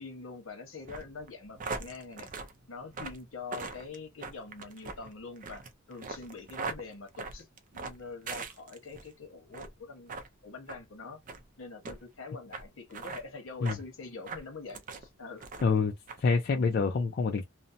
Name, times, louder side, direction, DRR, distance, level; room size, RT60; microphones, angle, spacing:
voice 1, 0.0-2.3 2.7-7.5 7.7-10.2 10.4-11.2 11.6-15.5, left 4 dB, 70° left, 1.0 m, -45 dB
sound 1, 0.8-9.1 9.5-9.8 10.1-10.3 10.7-10.8 11.3-11.4 11.8-12.0 12.5-12.6 12.9-13.2 13.7-13.8 14.2-15.1 15.4-15.8 16.1-16.2, right 4 dB, 40° right, 0.5 m, -40 dB
voice 2, 15.6-15.9 16.2-17.4, left 4 dB, 50° left, 0.3 m, -26 dB
2.6 x 2.1 x 2.6 m
head